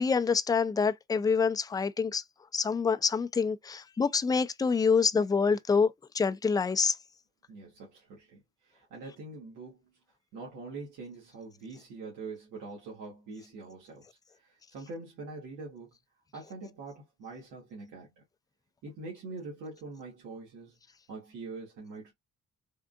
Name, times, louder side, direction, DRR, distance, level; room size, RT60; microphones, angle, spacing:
voice 1, 0.0-2.2 2.5-7.0, left 5 dB, 15° left, 0.3 m, -26 dB
voice 2, 7.5-8.4 8.7-9.8 10.3-15.9 16.3-18.2 18.8-20.7 21.1-22.1, right 3 dB, 90° right, 1.5 m, -44 dB
3.6 x 2.5 x 2.2 m
cardioid pair, 90°, 30 cm